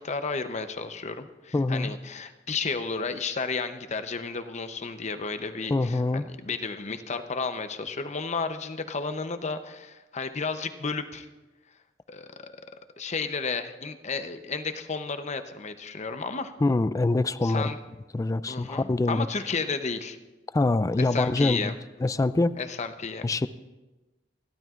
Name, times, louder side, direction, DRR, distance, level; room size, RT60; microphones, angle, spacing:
voice 1, 0.0-11.3 12.1-12.5 13.0-16.5 17.4-17.8 18.5-20.2 21.0-21.7 22.6-23.3, left 4 dB, 40° left, 9 dB, 0.7 m, -32 dB
voice 2, 1.5-1.9 5.7-6.3 16.6-17.7 18.1-19.3 20.5-21.7 22.0-22.6 23.2-23.5, left 2 dB, 20° left, 15 dB, 0.3 m, -24 dB
27.5 x 12.0 x 2.5 m, 1.1 s
head